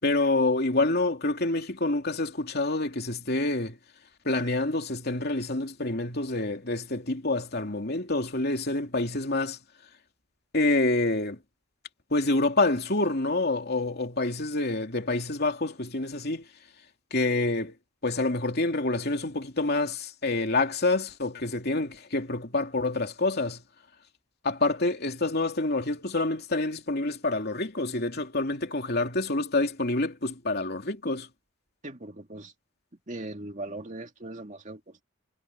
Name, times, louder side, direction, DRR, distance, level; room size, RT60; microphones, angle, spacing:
voice 1, 0.0-3.8 4.2-9.6 10.5-11.4 12.1-16.5 17.1-17.7 18.0-23.6 24.4-31.3, left 2 dB, 55° left, 3.0 m, -27 dB
voice 2, 31.8-32.5 33.1-35.0, right 2 dB, 40° right, 2.2 m, -39 dB
head